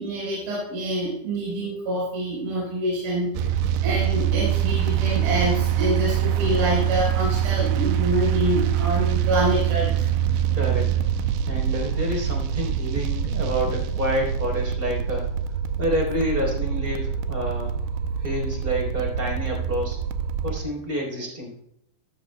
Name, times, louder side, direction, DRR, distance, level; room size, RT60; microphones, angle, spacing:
voice 1, 0.0-3.3 3.8-9.9, right 1 dB, 60° right, -6 dB, 6.1 m, -26 dB
sound 1, 3.3-20.6, right 9 dB, 90° right, 2.8 m, -24 dB
voice 2, 10.5-10.9 11.5-15.3 15.8-17.7 18.2-20.0 20.4-21.5, equal, 15° right, -1 dB, 3.2 m, -28 dB
15.5 x 13.0 x 2.2 m, 0.77 s
omnidirectional pair, 4.9 m